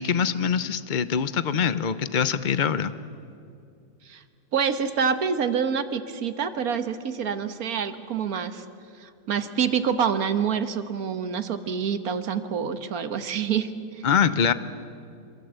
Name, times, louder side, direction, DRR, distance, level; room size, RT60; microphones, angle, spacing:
voice 1, 0.0-2.9 14.0-14.5, left 7 dB, 40° left, 13 dB, 0.7 m, -24 dB
voice 2, 4.5-8.6 9.0-14.1, right 7 dB, 60° right, 9 dB, 1.6 m, -27 dB
27.0 x 22.0 x 8.1 m, 2.5 s
omnidirectional pair, 1.8 m